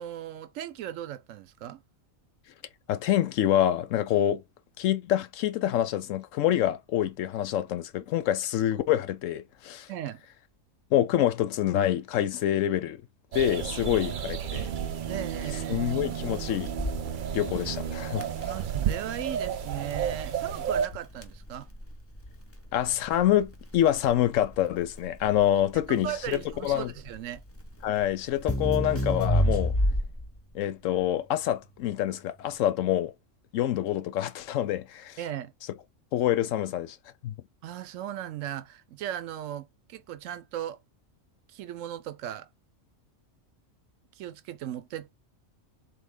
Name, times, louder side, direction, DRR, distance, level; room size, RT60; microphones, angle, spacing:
voice 1, 0.0-1.8 9.9-10.3 13.7-14.0 14.5-15.8 18.4-21.7 25.9-27.4 35.2-35.5 37.6-40.8 41.5-42.5 44.1-45.1, right 11 dB, 75° right, 1.0 m, -37 dB
voice 2, 2.9-4.4 4.8-9.9 10.9-13.0 13.3-14.7 15.7-16.7 17.3-18.3 22.7-26.1 26.6-26.9 27.8-29.7 30.5-33.1 33.5-35.2 36.1-37.0 37.2-37.3, left 12 dB, 75° left, 1.0 m, -26 dB
sound 1, 13.3-20.9, right 8 dB, 60° right, 0.5 m, -32 dB
Crackle, 16.8-30.4, equal, 15° left, 0.7 m, -31 dB
3.8 x 3.3 x 3.5 m
omnidirectional pair, 1.4 m